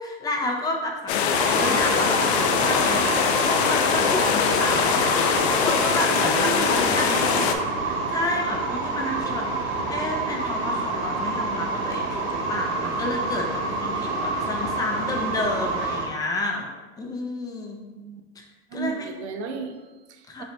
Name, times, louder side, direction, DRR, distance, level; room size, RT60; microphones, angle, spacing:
voice 1, 0.0-5.0 5.6-7.4 7.8-16.7 17.0-17.8 18.7-19.1 20.3-20.4, left 2 dB, 10° left, 1 dB, 0.4 m, -30 dB
sound 1, 1.1-7.5, left 7 dB, 75° left, 0.6 m, -22 dB
sound 2, 1.3-16.0, right 3 dB, 60° right, 1.5 m, -28 dB
voice 2, 6.1-7.8 17.9-18.2 18.7-20.4, right 4 dB, 85° right, 6 dB, 0.7 m, -34 dB
5.8 x 2.7 x 3.3 m, 1.2 s
supercardioid pair, 140°, 33 cm